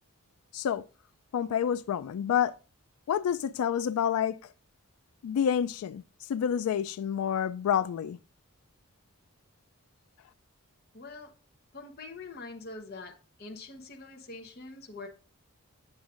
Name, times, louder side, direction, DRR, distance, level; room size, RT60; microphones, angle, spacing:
voice 1, 0.5-0.8 1.3-2.5 3.1-4.4 5.2-6.0 6.3-8.2, left 8 dB, 80° left, 0.3 m, -28 dB
voice 2, 10.9-11.3 11.7-15.1, left 3 dB, 45° left, 0.9 m, -44 dB
7.6 x 7.1 x 2.5 m
head